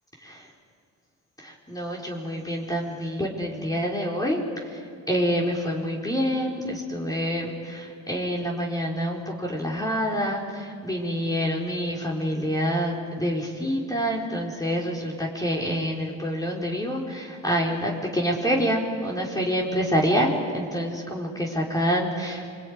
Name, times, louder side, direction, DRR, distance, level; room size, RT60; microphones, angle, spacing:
voice 1, 1.4-4.8 5.1-22.5, equal, 10° left, -2 dB, 4.4 m, -27 dB
27.5 x 22.5 x 9.6 m, 2.3 s
cardioid pair, 90°, 30 cm